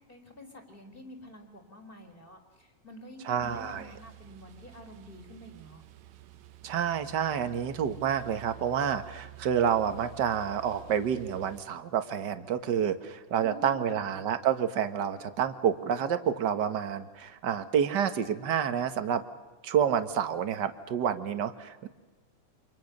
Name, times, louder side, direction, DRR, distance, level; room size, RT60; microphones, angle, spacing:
voice 1, 0.1-5.8 13.4-14.1, left 1 dB, 15° left, 4 dB, 4.2 m, -48 dB
voice 2, 3.2-3.9 6.6-19.2 19.6-21.9, right 8 dB, 45° right, 9 dB, 1.5 m, -29 dB
sound 1, 3.4-11.6, right 16 dB, 75° right, 2.3 m, -50 dB
29.5 x 26.5 x 6.6 m, 1.2 s
omnidirectional pair, 3.4 m